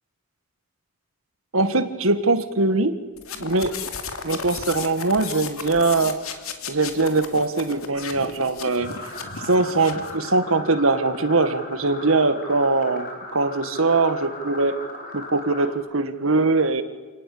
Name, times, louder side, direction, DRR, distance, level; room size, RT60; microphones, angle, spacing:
voice 1, 1.5-3.0 3.4-3.8 4.2-6.3 6.7-8.9 9.4-14.8 15.1-16.8, right 3 dB, 75° right, 11 dB, 1.9 m, -22 dB
sound 1, 3.2-10.2, left 5 dB, 80° left, 2.7 m, -35 dB
sound 2, 8.8-15.7, left 2 dB, 40° left, 5.2 m, -38 dB
28.5 x 18.5 x 8.7 m, 1.4 s
head